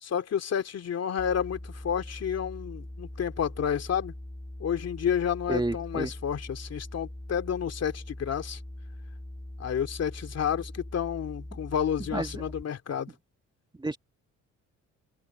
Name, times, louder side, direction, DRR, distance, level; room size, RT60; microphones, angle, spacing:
voice 1, 0.0-4.1 4.6-8.6 9.6-13.1, left 8 dB, 55° left, 2.7 m, -30 dB
sound 1, 1.2-12.6, left 1 dB, 10° left, 4.3 m, -42 dB
voice 2, 5.5-6.1 12.1-12.4 13.8-14.0, right 2 dB, 15° right, 1.9 m, -30 dB
open air
cardioid pair, 90°, 30 cm